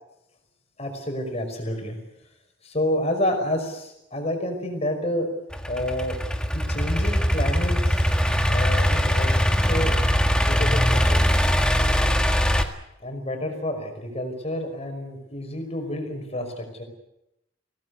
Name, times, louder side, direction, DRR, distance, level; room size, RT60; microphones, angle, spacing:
voice 1, 0.8-2.0 2.6-5.3 5.7-6.2 6.5-8.0 8.5-10.0 10.4-11.4 13.0-16.8, left 1 dB, 35° left, 5 dB, 5.4 m, -29 dB
Idling / Accelerating revving vroom, 5.5-12.6, equal, 5° left, 1.7 m, -21 dB
24.0 x 18.0 x 9.6 m, 0.86 s
head